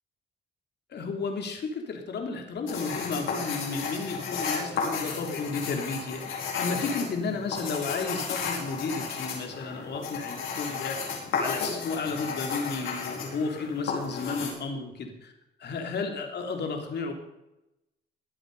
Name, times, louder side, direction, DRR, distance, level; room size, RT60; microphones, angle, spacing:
voice 1, 0.9-15.3 15.6-17.1, left 4 dB, 60° left, 3 dB, 3.3 m, -33 dB
sound 1, 2.7-14.5, left 5 dB, 80° left, 4.9 m, -33 dB
21.5 x 7.9 x 5.5 m, 0.90 s
cardioid pair, 90°, 20 cm